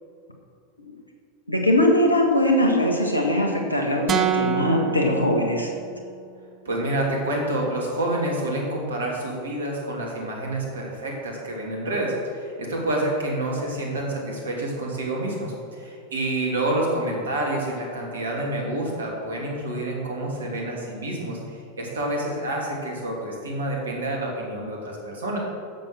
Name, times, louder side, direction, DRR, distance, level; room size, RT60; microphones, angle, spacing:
voice 1, 1.5-5.7, left 1 dB, 90° left, 1 dB, 1.6 m, -21 dB
sound 1, 4.1-6.2, right 8 dB, 30° right, 0.9 m, -26 dB
voice 2, 6.6-21.4 21.8-25.4, right 1 dB, 70° right, -1 dB, 2.8 m, -28 dB
10.5 x 7.6 x 6.3 m, 2.3 s
figure-of-eight pair, 85°, 0 cm